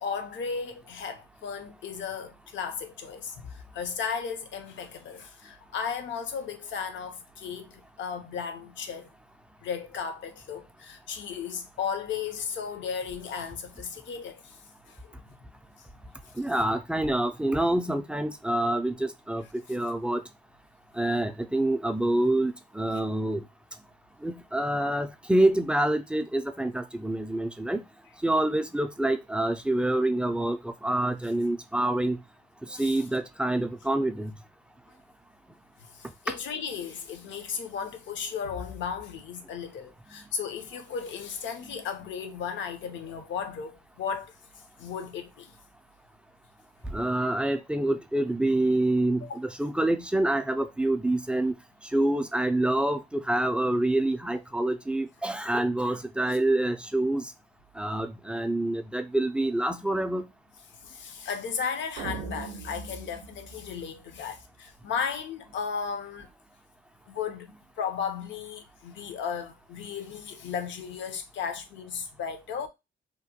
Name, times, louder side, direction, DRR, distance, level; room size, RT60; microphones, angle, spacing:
voice 1, 0.0-9.1 9.6-14.6 14.9-15.0 32.7-33.0 35.9-44.3 44.8-45.5 49.2-49.4 60.8-66.3 67.1-72.7, left 6 dB, 70° left, 0.6 m, -35 dB
voice 2, 16.4-20.2 20.9-23.4 24.2-27.8 28.2-32.2 32.7-34.3 36.3-36.4 46.9-51.5 51.9-57.3 57.8-60.3, right 1 dB, 5° right, 0.3 m, -27 dB
sound 1, 62.0-64.4, right 5 dB, 85° right, 0.5 m, -40 dB
2.9 x 2.1 x 2.8 m
cardioid pair, 90°, 20 cm